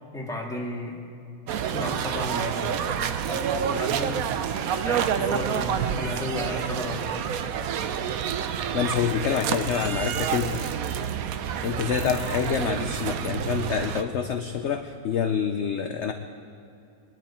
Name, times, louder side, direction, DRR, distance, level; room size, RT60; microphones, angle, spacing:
voice 1, 0.1-1.0 1.7-2.8 3.3-4.3 4.8-7.2, left 1 dB, ahead, -2 dB, 1.9 m, -33 dB
sound 1, 1.5-14.0, right 8 dB, 75° right, 1.1 m, -28 dB
voice 2, 8.7-10.6 11.6-16.1, left 7 dB, 60° left, 6 dB, 0.9 m, -27 dB
21.5 x 11.5 x 4.3 m, 2.6 s
omnidirectional pair, 1.6 m